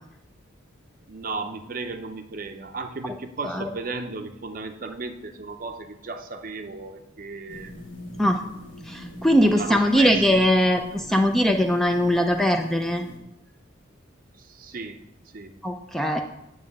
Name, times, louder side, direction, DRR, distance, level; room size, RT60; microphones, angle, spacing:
voice 1, 1.1-7.7 9.1-9.2 9.5-10.4 11.1-11.2 14.4-15.0 15.3-15.5, right 3 dB, 45° right, 7 dB, 0.6 m, -35 dB
sound 1, 7.5-13.2, left 1 dB, 70° left, 1.2 m, -41 dB
voice 2, 8.8-13.1 15.6-16.2, equal, ahead, 4 dB, 0.3 m, -21 dB
9.1 x 3.1 x 6.5 m, 0.85 s
head